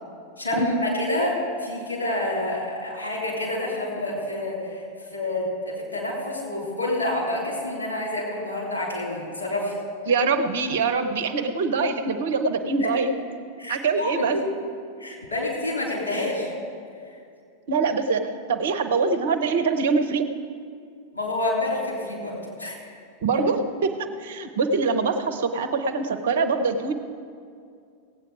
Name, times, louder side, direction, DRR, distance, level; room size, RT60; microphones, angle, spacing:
voice 1, 0.4-4.8 5.1-9.7 12.8-12.9 13.6-14.5 15.0-16.5 21.1-22.8, left 1 dB, 75° left, -5 dB, 3.7 m, -28 dB
voice 2, 10.1-13.1 13.7-14.4 17.7-20.3 23.2-26.9, right 4 dB, 60° right, 8 dB, 0.7 m, -24 dB
17.0 x 8.8 x 5.0 m, 2.4 s
figure-of-eight pair, 90°, 0 cm